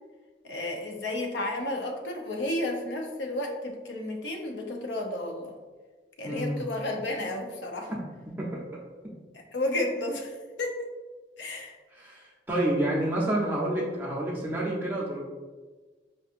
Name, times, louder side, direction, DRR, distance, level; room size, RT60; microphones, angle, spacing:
voice 1, 0.4-5.5 6.2-7.9 9.3-10.9 11.4-11.8, left 1 dB, 80° left, 3 dB, 0.6 m, -32 dB
voice 2, 6.2-6.6 7.9-8.0 8.4-8.8 11.9-15.2, right 1 dB, 10° right, -5 dB, 0.7 m, -29 dB
4.4 x 2.8 x 2.5 m, 1.3 s
head